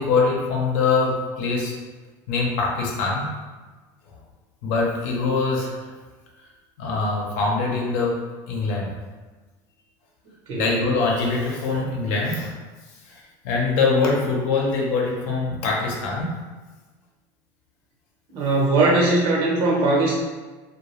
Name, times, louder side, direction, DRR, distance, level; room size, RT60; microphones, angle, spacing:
voice 1, 0.0-1.7 2.3-3.3 4.1-4.2 4.6-5.9 6.8-9.0 10.5-12.5 13.0-16.4, left 4 dB, 75° left, -2 dB, 0.7 m, -23 dB
voice 2, 18.3-20.2, right 2 dB, 65° right, -3 dB, 1.0 m, -20 dB
2.3 x 2.2 x 3.1 m, 1.3 s
supercardioid pair, 105°, 10 cm